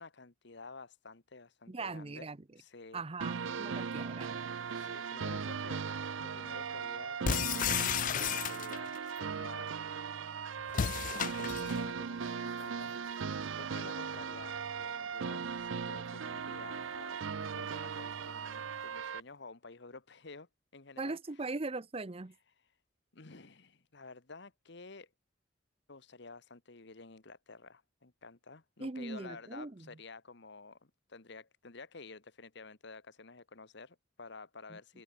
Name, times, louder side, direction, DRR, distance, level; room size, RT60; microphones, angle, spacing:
voice 1, 0.0-2.3 2.6-3.0 4.7-5.9 6.2-9.7 10.7-17.2 17.5-21.2 23.1-25.1 25.9-35.0, left 3 dB, 60° left, 1.4 m, -51 dB
voice 2, 1.7-2.4 2.9-4.4 21.0-22.3 28.8-30.0 34.7-34.8, right 3 dB, 30° right, 0.7 m, -40 dB
sound 1, 3.2-19.2, right 6 dB, 85° right, 0.6 m, -38 dB
sound 2, 7.2-9.0 10.7-11.8, left 8 dB, 40° left, 0.4 m, -33 dB
sound 3, 11.7-19.4, left 1 dB, 20° left, 6.2 m, -68 dB
head